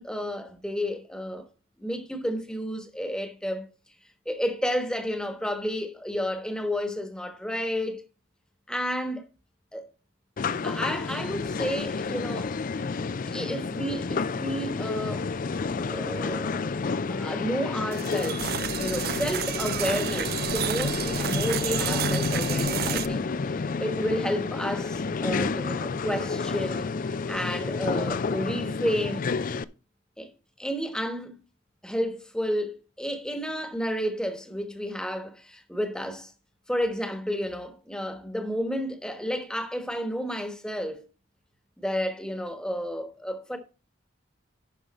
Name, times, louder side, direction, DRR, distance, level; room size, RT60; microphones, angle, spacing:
voice 1, 0.0-1.5 1.8-3.7 4.2-8.0 8.7-9.3 9.7-9.9 10.6-12.5 13.2-15.3 15.9-16.7 17.1-18.5 18.8-26.9 27.3-29.3 30.2-30.3 30.6-31.4 31.8-36.3 36.7-41.1 41.8-43.6, equal, 5° left, 1.2 m, -31 dB
sound 1, 10.4-29.6, left 4 dB, 40° left, 0.4 m, -30 dB
sound 2, 17.9-23.1, right 10 dB, 50° right, 0.4 m, -31 dB
11.5 x 5.1 x 4.2 m
head